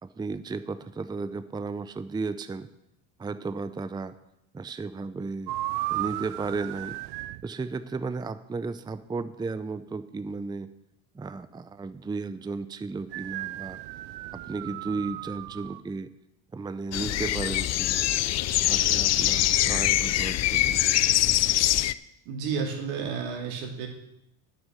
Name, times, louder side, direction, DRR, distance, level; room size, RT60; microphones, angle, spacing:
voice 1, 0.0-2.7 3.2-4.1 4.5-5.5 5.9-7.0 7.4-10.7 11.1-13.8 14.3-16.1 16.5-18.1 18.7-20.8, right 4 dB, 10° right, 12 dB, 0.5 m, -34 dB
sound 1, 5.5-7.4 13.1-15.8, right 16 dB, 65° right, 0.6 m, -35 dB
sound 2, 16.9-21.9, left 14 dB, 40° left, 0.4 m, -23 dB
voice 2, 22.3-23.9, right 6 dB, 85° right, 1 dB, 2.5 m, -31 dB
8.8 x 7.6 x 6.7 m, 0.83 s
supercardioid pair, 90°, 41 cm